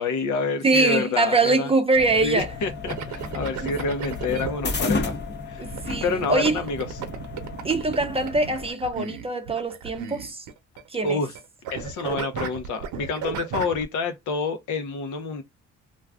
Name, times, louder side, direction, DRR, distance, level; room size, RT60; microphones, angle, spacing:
voice 1, 0.0-1.7 2.2-5.1 5.5-5.6 6.0-6.9 11.0-11.3 11.7-15.4, left 4 dB, 80° left, 0.7 m, -28 dB
voice 2, 0.6-2.5 3.6-3.7 5.6-6.6 7.6-10.4 10.9-11.2, right 3 dB, 20° right, 0.5 m, -23 dB
sound 1, 1.9-8.7, left 3 dB, 35° left, 0.7 m, -33 dB
sound 2, 2.9-4.5 5.7-10.8 11.1-11.4 11.6-13.8, right 8 dB, 75° right, 0.8 m, -34 dB
2.5 x 2.3 x 3.4 m
cardioid pair, 90°, 30 cm